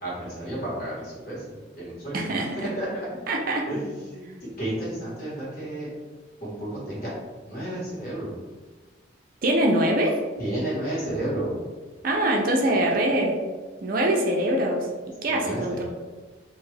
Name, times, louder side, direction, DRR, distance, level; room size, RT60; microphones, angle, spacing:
voice 1, 0.0-1.4 1.8-2.3 2.6-3.3 3.7-4.2 4.6-5.9 6.4-7.1 7.4-8.3 10.4-11.5 15.3-15.8, right 1 dB, 45° left, -8 dB, 1.3 m, -31 dB
voice 2, 2.1-2.7 3.3-3.6 9.4-10.2 12.0-13.4 13.8-14.9 15.2-15.8, right 1 dB, 45° right, 0 dB, 0.4 m, -23 dB
2.5 x 2.3 x 3.2 m, 1.3 s
head